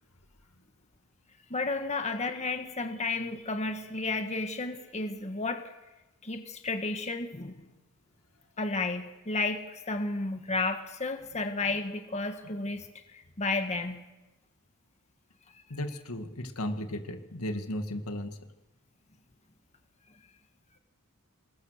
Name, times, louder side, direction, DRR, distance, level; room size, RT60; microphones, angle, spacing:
voice 1, 1.5-5.6 6.2-7.6 8.6-12.9 13.1-14.0, left 3 dB, 30° left, 6 dB, 1.6 m, -32 dB
voice 2, 15.7-18.4, left 1 dB, 80° left, 7 dB, 2.0 m, -35 dB
26.5 x 21.0 x 6.6 m, 1.1 s
head